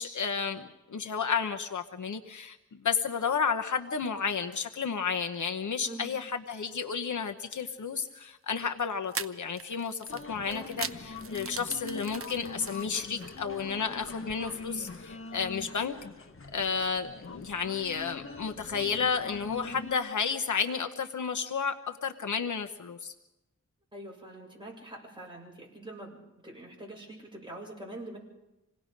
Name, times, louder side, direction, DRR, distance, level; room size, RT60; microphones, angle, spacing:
voice 1, 0.0-16.0 16.5-23.1, left 6 dB, 75° left, 5 dB, 1.0 m, -32 dB
sound 1, 8.0-8.2 9.1-13.4, right 5 dB, 45° right, 0.7 m, -40 dB
sound 2, 10.1-19.9, left 3 dB, 45° left, 1.3 m, -43 dB
voice 2, 23.9-28.2, right 1 dB, 15° right, -3 dB, 7.3 m, -44 dB
27.0 x 18.5 x 5.2 m, 0.98 s
wide cardioid pair, 110°, 30 cm